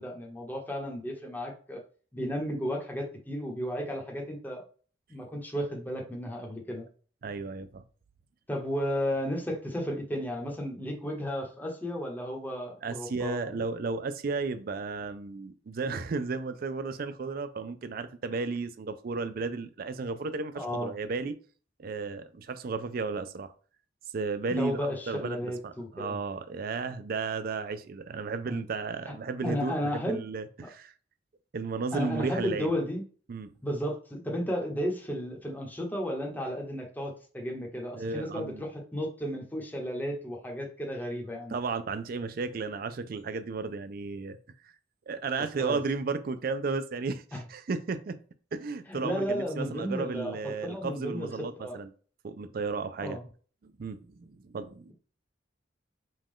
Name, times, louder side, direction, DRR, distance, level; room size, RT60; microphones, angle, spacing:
voice 1, 0.0-1.8 2.1-4.6 5.1-6.9 8.5-13.5 20.6-20.9 24.5-26.2 28.5-28.6 29.4-30.2 30.6-30.7 31.9-33.0 33.6-41.5 45.6-45.8 47.3-47.4 48.9-51.3 51.6-51.8 53.0-53.2, equal, 10° left, 1.1 m, -33 dB
voice 2, 7.2-7.8 12.8-21.3 21.8-23.5 24.1-24.8 25.1-30.9 31.5-32.7 33.3-33.5 38.0-38.6 41.5-44.4 44.6-44.7 45.1-48.2 48.5-51.9 52.2-53.2 53.6-54.9, right 4 dB, 55° right, 0.4 m, -34 dB
5.3 x 2.4 x 3.6 m
head